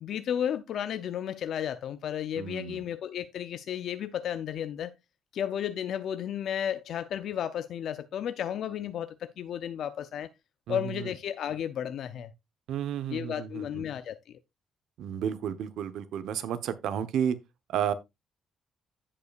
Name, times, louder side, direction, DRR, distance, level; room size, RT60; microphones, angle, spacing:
voice 1, 0.0-4.9 5.3-10.3 10.7-12.3 13.1-14.4, left 9 dB, 60° left, 0.5 m, -33 dB
voice 2, 2.4-2.8 10.7-10.9 12.7-13.8 15.0-17.4 17.7-17.9, right 9 dB, 75° right, 0.9 m, -32 dB
15.5 x 5.5 x 2.4 m
cardioid pair, 165°, 0 cm